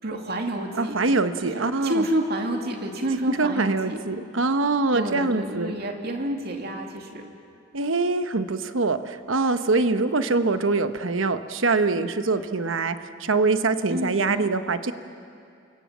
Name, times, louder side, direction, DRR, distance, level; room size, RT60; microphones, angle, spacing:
voice 1, 0.0-0.9 1.4-4.0 4.9-7.3 13.9-14.5, right 1 dB, 50° right, 2 dB, 2.6 m, -29 dB
voice 2, 0.8-2.0 3.3-5.7 7.7-14.9, right 3 dB, 75° right, 10 dB, 1.1 m, -24 dB
28.5 x 25.0 x 7.4 m, 2.5 s
head